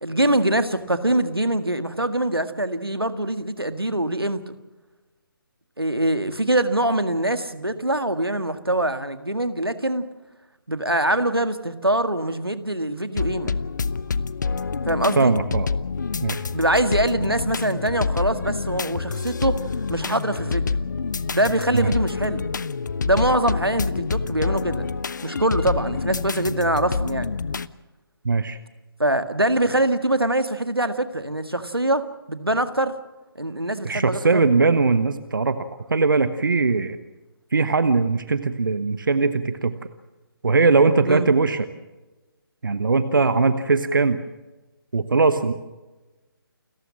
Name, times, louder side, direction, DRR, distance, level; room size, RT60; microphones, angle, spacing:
voice 1, 0.0-4.4 5.8-10.0 10.7-13.6 14.9-15.3 16.5-19.6 19.9-20.7 21.3-22.4 23.0-24.9 25.2-27.3 29.0-32.9 33.4-34.4 41.1-41.3, right 1 dB, 90° right, 10 dB, 1.9 m, -23 dB
sound 1, 13.2-27.7, left 5 dB, 55° left, 0.7 m, -27 dB
voice 2, 15.2-15.7 16.2-16.4 21.7-21.9 28.2-28.6 33.8-35.6 35.9-37.0 37.5-39.7 40.4-41.6 42.6-44.2 44.9-45.5, right 4 dB, 60° right, 12 dB, 1.2 m, -20 dB
29.0 x 14.5 x 7.3 m, 1.1 s
figure-of-eight pair, 145°, 12 cm